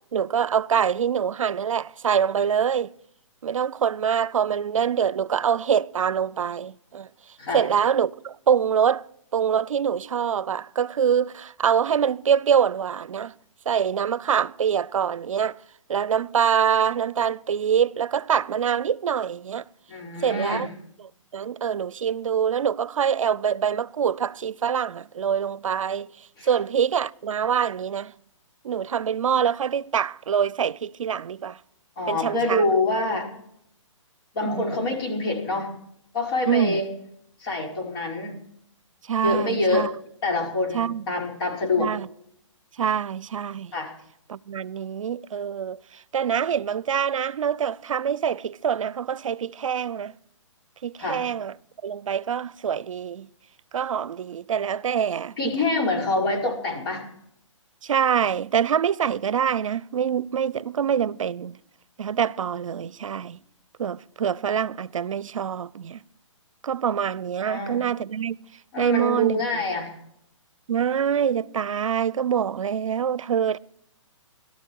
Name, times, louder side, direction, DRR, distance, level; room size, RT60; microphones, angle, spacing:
voice 1, 0.1-2.9 3.4-7.1 7.5-13.3 13.7-15.6 15.9-19.7 20.2-20.7 21.0-28.1 28.6-31.6 32.1-32.6 34.4-34.6 36.5-36.8 39.0-39.9 40.7-41.0 41.8-42.1 42.8-43.7 44.3-50.1 50.8-51.5 51.8-53.3 53.7-55.5 57.8-61.6 62.0-63.4 63.8-66.0 66.6-68.4 68.8-69.4 70.7-73.6, right 8 dB, 80° right, 0.5 m, -25 dB
voice 2, 19.9-20.6 26.4-26.5 32.0-33.3 34.3-35.7 36.1-36.9 37.4-38.4 39.2-39.9 40.2-41.9 43.7-43.9 51.0-51.2 55.4-57.0 67.4-67.8 68.7-69.9, left 2 dB, 45° left, 4.9 m, -25 dB
18.0 x 12.5 x 4.6 m
hypercardioid pair, 155°, 17 cm